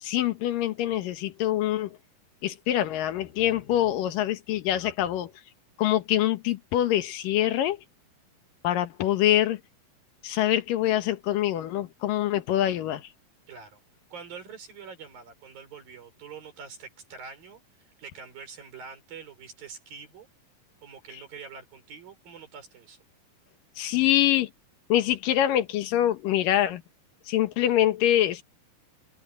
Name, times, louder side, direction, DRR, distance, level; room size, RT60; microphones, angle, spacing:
voice 1, 0.0-2.0 2.4-5.3 5.8-7.8 8.6-9.6 10.2-13.1 23.8-24.5 24.9-26.8 27.3-28.4, left 12 dB, 75° left, 2.9 m, -25 dB
voice 2, 13.5-13.8 14.1-17.6 18.0-20.3 20.8-23.0, right 5 dB, 80° right, 7.2 m, -45 dB
open air
omnidirectional pair, 4.0 m